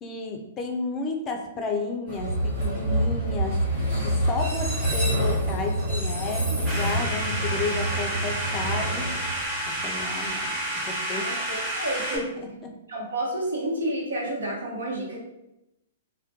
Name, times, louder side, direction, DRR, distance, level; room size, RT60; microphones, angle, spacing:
voice 1, 0.0-3.6 4.0-9.1 9.7-11.4 12.1-12.7, left 3 dB, 25° left, 3 dB, 0.4 m, -32 dB
Train, 2.1-10.0, right 1 dB, 65° right, 1.1 m, -27 dB
sound 1, 6.7-12.2, right 1 dB, 20° right, 0.8 m, -30 dB
voice 2, 11.1-12.2 12.9-15.2, right 1 dB, 85° right, -3 dB, 0.8 m, -30 dB
2.2 x 2.1 x 2.8 m, 0.87 s
hypercardioid pair, 130°, 0 cm